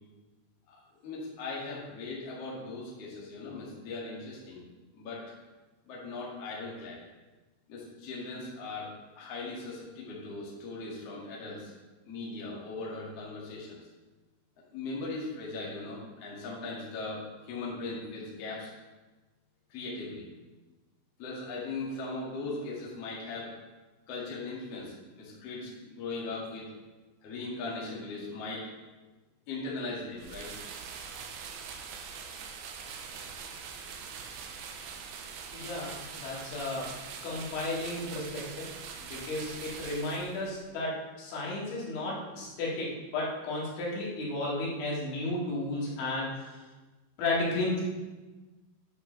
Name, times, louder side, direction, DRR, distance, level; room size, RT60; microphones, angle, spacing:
voice 1, 0.7-4.6 4.9-5.2 5.9-7.0 7.7-11.7 12.1-13.8 14.7-18.7 19.7-20.3 21.2-23.5 24.1-26.8 27.2-29.0 29.5-30.5 31.1-31.3, left 3 dB, 50° left, -5 dB, 2.0 m, -39 dB
sound 1, 30.2-40.6, right 6 dB, 80° right, 2.8 m, -43 dB
voice 2, 35.5-36.9 37.2-38.7 39.0-46.7 47.2-47.8, left 2 dB, 70° left, -5 dB, 4.4 m, -33 dB
10.0 x 8.6 x 3.4 m, 1.2 s
omnidirectional pair, 5.8 m